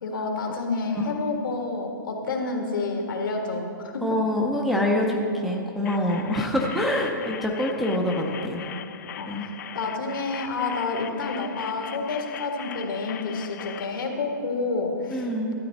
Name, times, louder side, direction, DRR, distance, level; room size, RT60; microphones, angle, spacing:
voice 1, 0.0-4.0 9.2-15.5, left 3 dB, 75° left, 2 dB, 1.7 m, -29 dB
voice 2, 4.0-8.6 9.3-9.4 15.1-15.5, left 1 dB, ahead, -2 dB, 0.5 m, -25 dB
sound 1, 5.8-13.8, left 10 dB, 55° left, 0.4 m, -40 dB
12.5 x 8.8 x 4.0 m, 2.6 s
hypercardioid pair, 165°, 11 cm